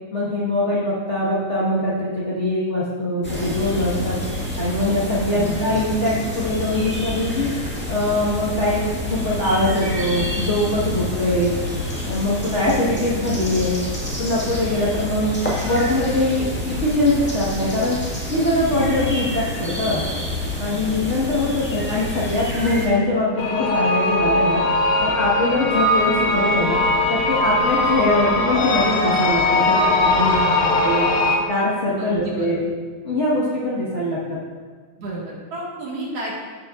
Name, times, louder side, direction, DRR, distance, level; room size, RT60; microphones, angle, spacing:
voice 1, 0.1-4.2 4.6-7.5 7.9-11.5 12.0-13.8 14.2-18.0 18.3-20.0 20.6-24.6 25.0-26.8 27.1-30.3 30.8-31.1 31.4-32.6 33.0-34.4, left 1 dB, 45° left, -8 dB, 0.9 m, -22 dB
sound 1, 3.2-22.9, left 1 dB, 15° left, 0.4 m, -28 dB
voice 2, 5.3-5.9 15.0-15.1 20.7-21.1 30.2-30.8 32.0-32.6 35.0-36.3, right 2 dB, 60° right, -5 dB, 2.6 m, -32 dB
sound 2, 23.4-31.4, left 2 dB, 70° left, 1.9 m, -20 dB
14.5 x 6.7 x 2.4 m, 1.5 s
omnidirectional pair, 3.4 m